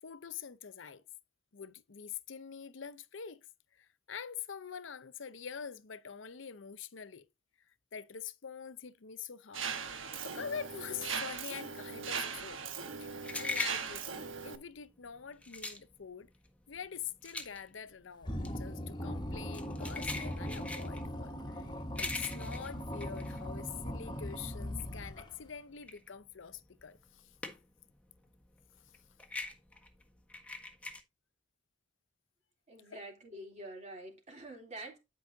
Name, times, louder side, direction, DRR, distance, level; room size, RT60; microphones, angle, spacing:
voice 1, 0.0-1.0 1.5-3.5 3.7-7.3 7.9-12.6 13.0-16.3 16.7-27.3 32.9-33.0, left 7 dB, 70° left, 0.7 m, -45 dB
Mechanisms, 9.5-14.6, right 6 dB, 80° right, 1.2 m, -39 dB
sound 1, 12.7-24.1 24.5-27.9 28.2-31.0, left 3 dB, 5° left, 1.4 m, -42 dB
sound 2, 18.2-25.5, equal, 25° left, 1.6 m, -40 dB
voice 2, 32.7-35.0, right 1 dB, 35° right, 3.2 m, -47 dB
11.5 x 5.5 x 2.7 m
head